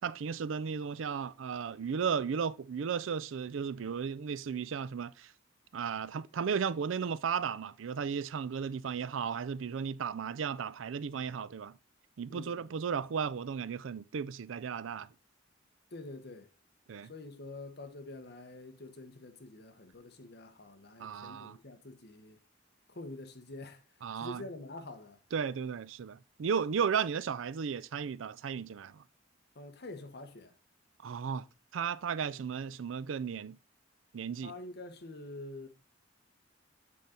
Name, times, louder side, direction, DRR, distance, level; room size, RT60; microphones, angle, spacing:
voice 1, 0.0-5.3 5.7-11.8 12.2-15.1 16.9-17.1 21.0-21.6 24.0-24.4 25.3-29.0 31.0-31.5 31.7-33.6 34.1-34.5, right 6 dB, 90° right, 0.4 m, -35 dB
voice 2, 12.3-12.7 15.9-16.5 17.1-22.4 22.9-23.8 24.2-25.2 29.5-30.5 34.4-35.7, left 2 dB, 55° left, 1.1 m, -46 dB
8.5 x 3.8 x 4.3 m
head